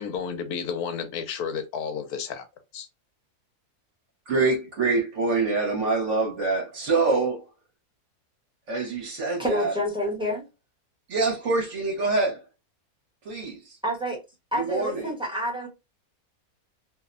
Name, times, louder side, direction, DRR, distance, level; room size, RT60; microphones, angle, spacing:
voice 1, 0.0-2.4 2.7-2.9, left 6 dB, 80° left, 1.1 m, -31 dB
voice 2, 4.3-7.5 8.7-9.7 11.1-12.4 13.2-13.8 14.5-15.1, right 3 dB, 60° right, 1.1 m, -25 dB
voice 3, 9.4-10.4 13.8-14.2 14.5-15.7, equal, 5° right, 0.7 m, -28 dB
2.7 x 2.0 x 2.4 m
omnidirectional pair, 1.6 m